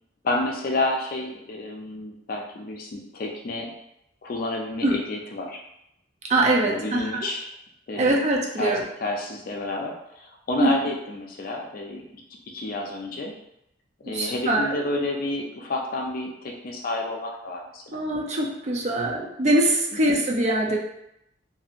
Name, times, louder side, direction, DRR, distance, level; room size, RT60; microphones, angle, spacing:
voice 1, 0.2-3.7 4.2-5.6 6.6-7.5 7.9-8.1 8.6-12.0 12.5-13.4 14.0-18.0 19.9-20.0, left 2 dB, 50° left, 1 dB, 0.4 m, -30 dB
voice 2, 6.3-7.3 7.9-8.8 10.6-10.7 14.1-14.7 17.9-20.8, right 1 dB, 40° right, -1 dB, 0.4 m, -23 dB
2.7 x 2.6 x 2.4 m, 0.81 s
head